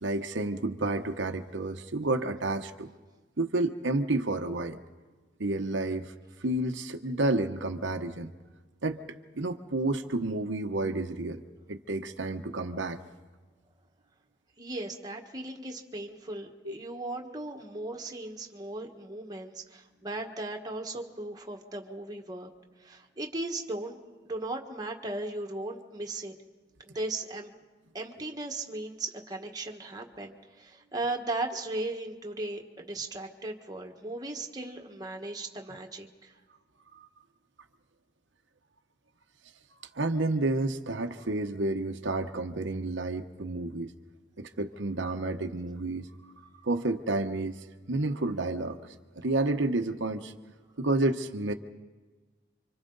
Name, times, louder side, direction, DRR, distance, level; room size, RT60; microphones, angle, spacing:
voice 1, 0.0-2.9 3.4-4.8 5.4-6.1 6.4-8.3 8.8-9.0 9.3-11.4 11.7-13.0 16.6-16.7 39.9-43.9 44.4-46.1 46.6-47.6 47.9-48.9 49.2-50.3 50.8-51.5, right 2 dB, 85° right, 5 dB, 1.0 m, -30 dB
voice 2, 14.6-22.5 22.8-24.0 24.2-26.3 26.8-27.5 27.9-36.3, right 2 dB, 20° right, 1 dB, 1.6 m, -37 dB
29.5 x 25.5 x 4.0 m, 1.3 s
head